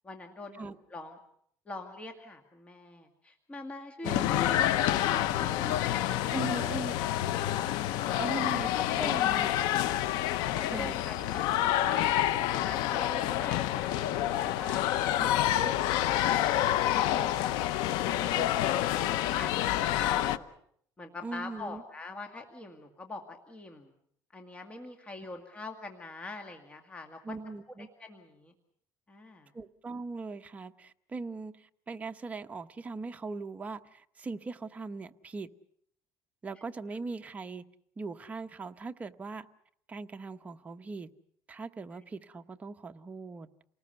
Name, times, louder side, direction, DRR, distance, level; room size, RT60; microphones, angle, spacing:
voice 1, 0.0-1.2 1.7-6.8 8.0-8.3 8.8-9.8 10.5-12.1 12.5-14.8 18.0-20.5 21.0-23.9 24.3-27.4 27.8-28.5 29.1-29.5, left 2 dB, 20° left, 4 dB, 2.0 m, -44 dB
sound 1, 4.0-20.4, left 12 dB, 85° left, 0.9 m, -28 dB
voice 2, 4.0-4.3 6.3-6.9 8.2-8.7 9.0-9.5 10.6-11.0 15.2-15.3 21.2-21.8 27.2-27.9 29.5-35.5 36.4-37.6 38.0-39.5 39.9-41.1 41.5-43.5, right 3 dB, 20° right, 7 dB, 1.0 m, -40 dB
28.5 x 19.0 x 6.8 m, 0.67 s
cardioid pair, 135°, 7 cm